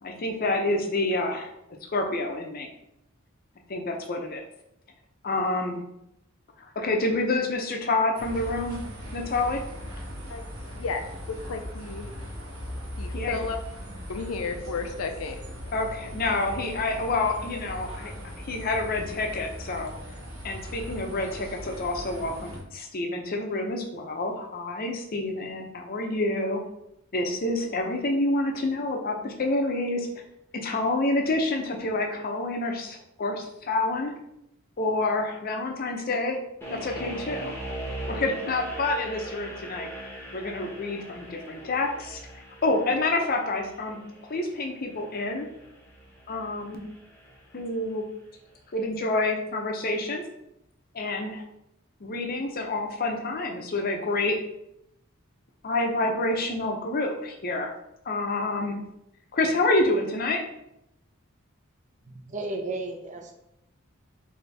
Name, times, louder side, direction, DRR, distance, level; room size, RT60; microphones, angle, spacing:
voice 1, 0.0-1.5 1.9-2.7 3.7-4.4 5.2-5.8 6.6-8.8 9.1-9.6 13.1-13.4 15.7-18.1 18.4-19.9 20.4-26.6 27.1-30.1 30.5-34.1 34.8-36.4 36.7-37.5 38.1-42.2 42.6-45.5 46.3-46.9 47.5-48.0 48.7-50.2 50.9-51.4 52.0-54.4 55.6-57.7 58.1-58.8 59.3-60.4, left 2 dB, 45° left, 2 dB, 0.6 m, -28 dB
sound 1, 8.2-22.6, equal, 90° right, 1.4 m, -39 dB
voice 2, 10.7-12.1 13.0-13.6 14.1-15.4, left 4 dB, 85° left, 6 dB, 0.5 m, -33 dB
sound 2, 36.6-47.7, right 1 dB, 10° left, 0.8 m, -40 dB
voice 3, 62.1-63.3, right 2 dB, 35° right, 3 dB, 0.5 m, -34 dB
4.1 x 2.7 x 3.3 m, 0.82 s
head